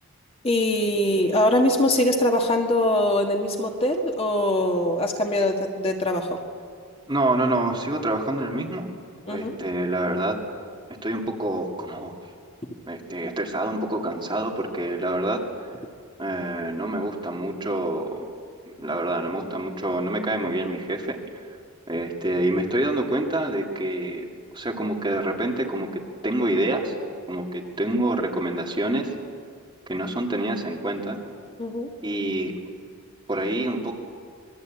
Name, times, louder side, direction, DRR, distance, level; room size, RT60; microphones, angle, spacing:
voice 1, 0.4-6.4 9.3-9.5 31.6-31.9, left 1 dB, 25° left, 2 dB, 1.6 m, -22 dB
voice 2, 7.1-8.9 9.3-10.4 11.0-12.2 12.9-15.4 16.2-18.1 18.6-21.2 21.9-24.2 24.5-25.9 26.2-26.9 27.3-29.1 29.9-31.2 32.0-32.5 33.3-34.0, right 1 dB, 20° right, 0 dB, 2.5 m, -26 dB
26.5 x 20.5 x 8.7 m, 2.2 s
head